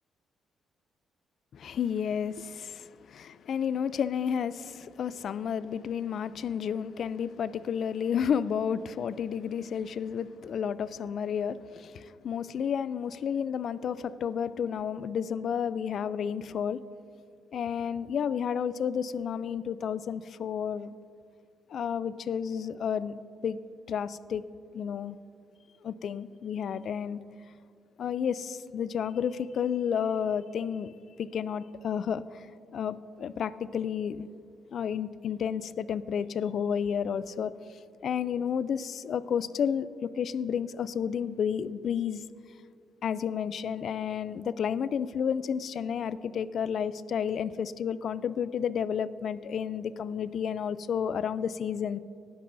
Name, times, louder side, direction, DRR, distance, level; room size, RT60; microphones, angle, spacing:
voice 1, 1.5-16.8 17.5-20.9 21.7-23.1 23.4-23.6 23.9-24.4 24.7-25.2 25.8-27.2 28.0-32.4 32.7-34.3 34.7-37.5 38.0-42.2 43.0-52.0, left 7 dB, 60° left, 16 dB, 0.4 m, -31 dB
18.5 x 11.0 x 2.6 m, 2.4 s
cardioid pair, 90°, 0 cm